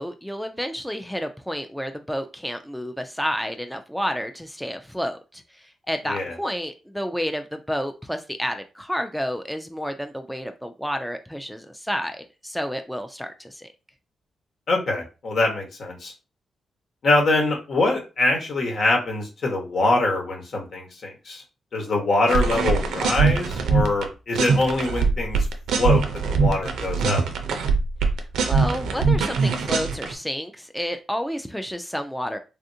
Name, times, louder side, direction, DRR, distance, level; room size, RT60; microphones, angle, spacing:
voice 1, 0.0-13.7 28.5-32.4, equal, ahead, 6 dB, 0.4 m, -30 dB
voice 2, 14.7-16.1 17.0-21.4 21.7-25.5 25.7-27.2, left 2 dB, 65° left, 0 dB, 1.2 m, -24 dB
sound 1, 22.3-24.1 24.4-30.1, right 4 dB, 85° right, 0.5 m, -22 dB
3.4 x 2.4 x 2.7 m, 0.31 s
cardioid pair, 65°, 0 cm